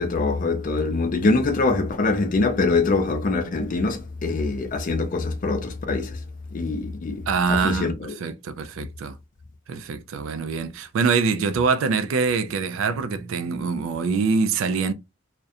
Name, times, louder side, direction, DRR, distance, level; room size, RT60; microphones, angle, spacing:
voice 1, 0.0-6.2 6.5-8.1, left 3 dB, 45° left, 0.4 m, -24 dB
voice 2, 7.3-9.2 9.7-14.9, right 5 dB, 75° right, 0.3 m, -24 dB
2.4 x 2.1 x 2.6 m
head